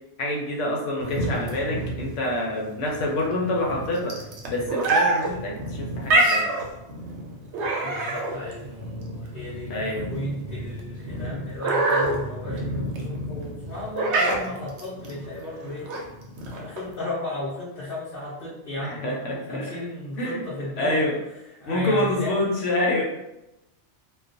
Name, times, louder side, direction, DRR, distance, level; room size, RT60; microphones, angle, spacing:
voice 1, 0.2-4.2 4.5-6.5 9.7-10.1 18.8-19.7 20.2-20.4 20.8-21.2 21.6-23.0, left 1 dB, 90° left, -1 dB, 1.0 m, -27 dB
sound 1, 1.0-17.0, right 2 dB, 75° right, 0.8 m, -27 dB
voice 2, 7.8-15.9 16.5-21.2 21.6-22.5, left 1 dB, 55° left, -9 dB, 0.8 m, -34 dB
2.3 x 2.2 x 2.5 m, 0.93 s
omnidirectional pair, 1.2 m